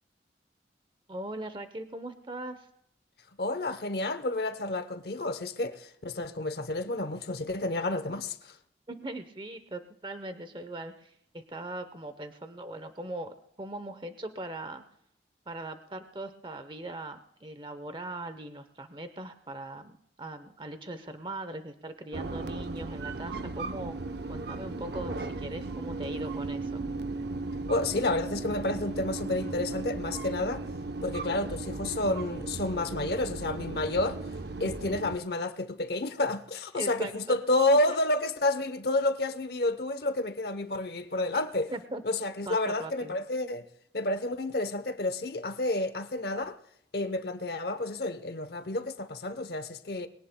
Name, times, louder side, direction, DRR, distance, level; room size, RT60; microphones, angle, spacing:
voice 1, 1.1-2.7 8.9-14.8 15.5-24.0 24.3-26.8 36.7-37.4 41.7-42.0 42.5-43.2, right 1 dB, 25° right, 0.8 m, -40 dB
voice 2, 3.4-8.5 27.7-30.6 31.0-34.2 34.6-41.7 42.0-43.7 43.9-46.6 46.9-50.1, left 2 dB, 60° left, 0.8 m, -30 dB
sound 1, 22.1-35.2, right 3 dB, 70° right, 0.7 m, -36 dB
22.0 x 17.5 x 2.2 m
head